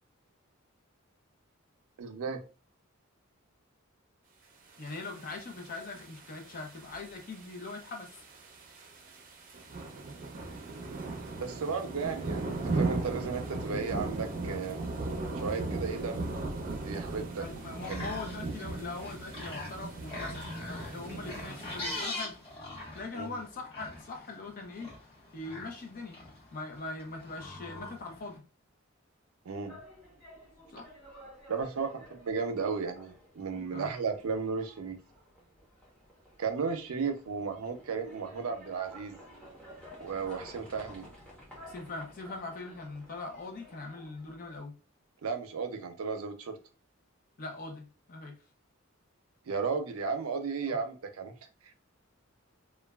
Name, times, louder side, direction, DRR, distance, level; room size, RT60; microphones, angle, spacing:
voice 1, 2.0-2.4 11.4-14.8 15.4-16.3 16.8-17.5 17.9-18.0 23.1-23.4 29.5-29.8 31.5-35.0 36.4-39.2 40.0-41.1 45.2-46.6 49.5-51.3 51.6-51.7, right 5 dB, 90° right, 0.5 m, -34 dB
voice 2, 4.8-8.2 17.4-22.4 22.9-24.9 25.3-26.2 26.5-28.4 30.7-30.9 33.7-33.9 41.6-44.7 47.4-48.4 50.7-50.8, left 3 dB, 40° left, 0.5 m, -41 dB
sound 1, 4.9-22.0, right 3 dB, 40° right, 0.5 m, -38 dB
sound 2, 17.6-28.4, left 2 dB, 25° left, 1.1 m, -43 dB
sound 3, 29.5-44.6, equal, 5° left, 0.8 m, -53 dB
3.0 x 2.2 x 2.3 m
head